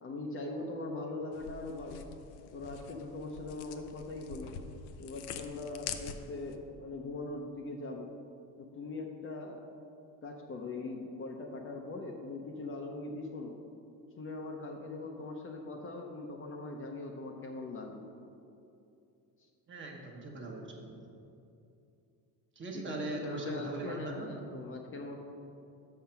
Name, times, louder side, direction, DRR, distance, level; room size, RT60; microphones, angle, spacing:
voice 1, 0.0-2.0 2.5-4.6 5.0-8.1 8.6-9.6 10.2-13.6 14.2-18.1 22.7-25.2, left 2 dB, 30° left, 2 dB, 0.7 m, -41 dB
sound 1, 1.3-6.6, left 7 dB, 70° left, 0.6 m, -45 dB
voice 2, 19.7-21.0 22.5-24.3, right 2 dB, 30° right, 1 dB, 1.2 m, -40 dB
6.4 x 5.7 x 5.7 m, 2.6 s
cardioid pair, 120°, 40 cm